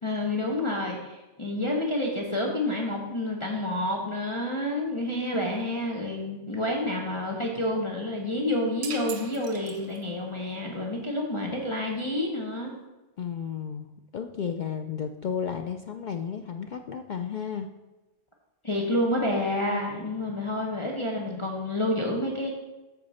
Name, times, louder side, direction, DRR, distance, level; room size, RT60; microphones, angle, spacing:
voice 1, 0.0-12.7 18.6-22.5, left 1 dB, 25° left, -2 dB, 1.0 m, -29 dB
sound 1, 8.8-10.3, right 6 dB, 75° right, 1.2 m, -40 dB
voice 2, 13.2-17.7, left 7 dB, 65° left, 6 dB, 0.4 m, -33 dB
8.1 x 6.4 x 4.2 m, 1.1 s
omnidirectional pair, 1.3 m